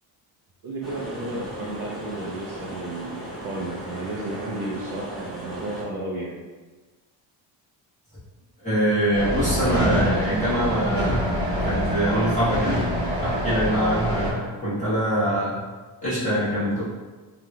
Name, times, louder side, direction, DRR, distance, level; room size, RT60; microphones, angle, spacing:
voice 1, 0.6-6.3, right 2 dB, 50° right, -5 dB, 0.6 m, -33 dB
sound 1, 0.8-5.8, equal, ahead, 1.0 m, -37 dB
voice 2, 8.6-11.3 11.6-12.8 13.2-15.6 16.0-16.8, equal, 15° left, -13 dB, 1.3 m, -24 dB
sound 2, 9.1-14.3, equal, 20° right, 1.4 m, -25 dB
3.3 x 2.9 x 2.3 m, 1.3 s
cardioid pair, 135°, 46 cm